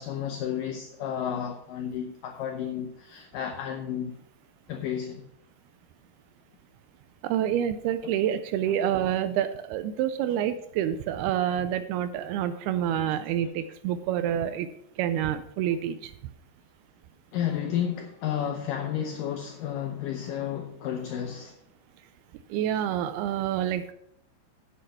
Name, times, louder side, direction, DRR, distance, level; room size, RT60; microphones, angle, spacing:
voice 1, 0.0-4.2 4.7-5.2 17.3-21.6, left 9 dB, 85° left, 1.9 m, -32 dB
voice 2, 7.2-14.7 15.0-16.1 22.5-23.9, right 10 dB, 80° right, 2.4 m, -28 dB
8.6 x 7.7 x 5.6 m
omnidirectional pair, 4.8 m